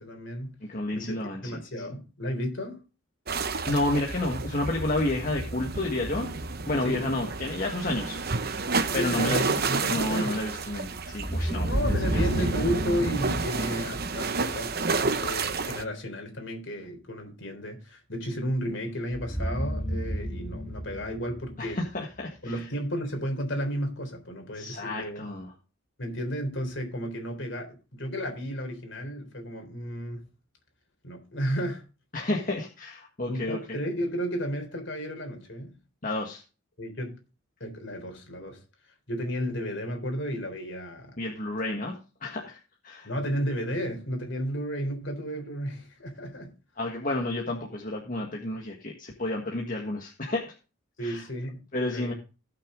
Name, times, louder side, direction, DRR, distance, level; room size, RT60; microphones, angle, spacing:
voice 1, 0.0-0.6 0.9-2.8 6.8-7.1 8.9-10.4 11.6-14.7 15.2-21.8 22.4-25.3 26.0-30.2 31.0-31.8 33.3-35.8 36.8-37.2 37.6-38.6 39.1-41.2 43.0-46.5 51.0-52.1, equal, 60° left, 3.7 m, -33 dB
voice 2, 0.7-1.4 3.3-6.3 6.7-8.5 8.9-9.5 9.9-11.7 12.0-12.5 21.6-22.6 24.5-25.5 32.1-33.8 36.0-36.4 41.2-42.6 42.8-43.1 46.8-50.5 51.0-51.2 51.7-52.1, left 2 dB, 40° left, 1.6 m, -30 dB
sound 1, 3.3-15.8, right 3 dB, 45° right, 0.9 m, -30 dB
sound 2, 11.2-14.1 19.1-22.3, equal, ahead, 4.8 m, -34 dB
17.5 x 6.2 x 3.7 m
head